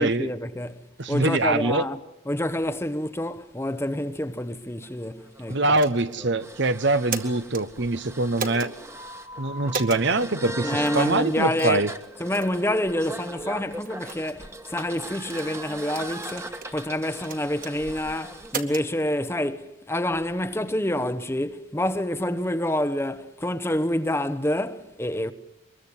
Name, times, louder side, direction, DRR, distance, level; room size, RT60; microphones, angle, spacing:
voice 1, 0.0-2.0 2.3-5.6 10.6-11.8 12.2-25.3, left 1 dB, 10° left, 1.0 m, -27 dB
voice 2, 1.0-1.8 5.5-8.7 9.4-11.9, right 2 dB, 55° right, 1.0 m, -24 dB
sound 1, 4.8-18.5, right 1 dB, 15° right, 1.5 m, -39 dB
sound 2, 5.7-6.2 6.9-7.6 8.4-8.7 9.7-10.0 10.9-11.0 11.6-11.8 12.3-12.5 13.1-13.2 13.8-14.2 14.9-15.3 16.1-16.7 17.2-17.7 18.4-18.9, right 4 dB, 40° right, 2.2 m, -34 dB
24.5 x 22.0 x 9.7 m
head